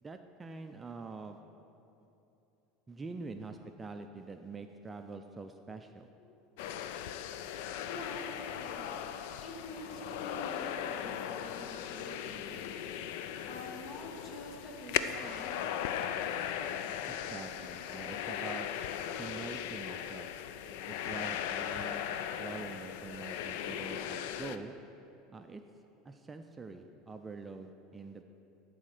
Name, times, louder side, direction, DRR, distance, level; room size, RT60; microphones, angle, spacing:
voice 1, 0.0-1.4 2.9-6.1 17.1-18.7 19.2-20.3 20.9-24.7 25.3-25.6 26.0-28.2, right 4 dB, 20° right, 6 dB, 0.4 m, -45 dB
sound 1, 6.6-24.6, left 9 dB, 75° left, 0.4 m, -38 dB
voice 2, 7.6-8.9 9.4-12.6 13.0-15.8 17.5-17.6 19.8-20.0 21.0-21.3, left 1 dB, 45° left, 0 dB, 1.8 m, -47 dB
12.5 x 4.2 x 6.5 m, 2.8 s
supercardioid pair, 125°, 0 cm